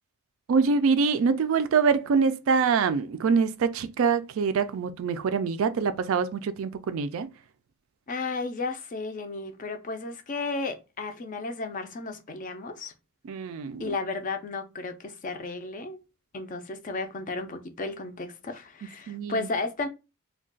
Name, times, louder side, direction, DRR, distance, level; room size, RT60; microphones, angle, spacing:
voice 1, 0.5-7.3 13.3-13.9 19.1-19.4, right 5 dB, 65° right, 0.3 m, -25 dB
voice 2, 8.1-12.9 13.8-16.0 16.3-19.9, left 3 dB, 35° left, 0.4 m, -33 dB
2.3 x 2.2 x 3.7 m
head